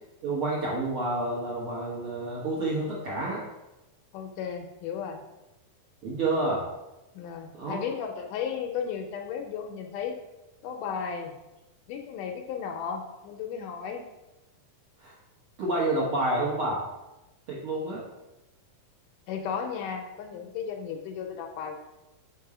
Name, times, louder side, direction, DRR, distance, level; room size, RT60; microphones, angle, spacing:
voice 1, 0.2-3.4 6.0-6.6 7.5-7.8 15.0-15.1 15.6-16.8 17.5-18.0, right 2 dB, 55° right, -6 dB, 1.6 m, -29 dB
voice 2, 4.1-5.2 7.1-10.2 10.6-11.3 11.9-14.0 19.3-21.7, left 7 dB, 75° left, 4 dB, 2.1 m, -34 dB
6.3 x 5.4 x 4.8 m, 0.99 s
omnidirectional pair, 4.0 m